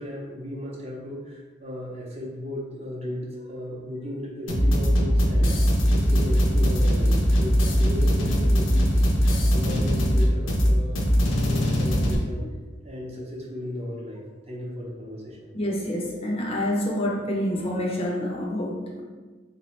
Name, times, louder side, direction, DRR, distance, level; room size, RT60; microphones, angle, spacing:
voice 1, 0.0-5.5 5.9-9.0 9.5-12.5 12.8-15.5, left 1 dB, 35° right, -3 dB, 0.7 m, -35 dB
sound 1, 4.5-12.2, equal, 80° left, 0.6 m, -21 dB
voice 2, 15.5-19.0, left 1 dB, 30° left, -1 dB, 0.5 m, -27 dB
3.7 x 2.7 x 3.1 m, 1.3 s
head